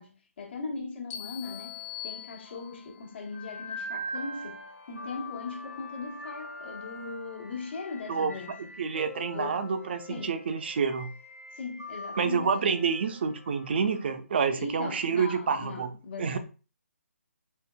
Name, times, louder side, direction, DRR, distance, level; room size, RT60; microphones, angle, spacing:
voice 1, 0.0-8.7 9.3-9.7 10.1-10.4 11.6-12.7 14.6-16.4, left 4 dB, 50° left, 1.1 m, -39 dB
sound 1, 1.1-3.0, left 12 dB, 15° left, 0.5 m, -42 dB
sound 2, 1.4-14.1, left 1 dB, 70° left, 1.1 m, -43 dB
voice 2, 8.8-11.1 12.2-15.9 16.2-16.4, right 6 dB, 45° right, 0.5 m, -28 dB
4.5 x 3.1 x 2.2 m
figure-of-eight pair, 150°, 8 cm